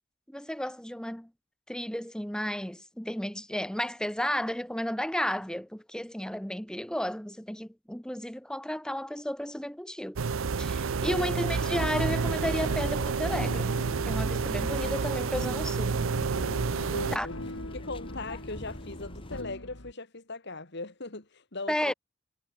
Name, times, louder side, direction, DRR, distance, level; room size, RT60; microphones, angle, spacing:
voice 1, 0.3-1.3 1.7-10.2 10.6-13.7 14.0-15.9 17.1-17.3 21.7-21.9, equal, 5° left, 1.3 m, -33 dB
sound 1, 10.2-17.2, right 5 dB, 85° right, 0.6 m, -29 dB
voice 2, 11.1-11.5 16.9-17.4 17.7-21.9, left 2 dB, 60° left, 2.6 m, -39 dB
sound 2, 11.5-19.4, left 1 dB, 25° left, 3.4 m, -44 dB
sound 3, 12.2-19.9, left 1 dB, 90° left, 4.9 m, -43 dB
head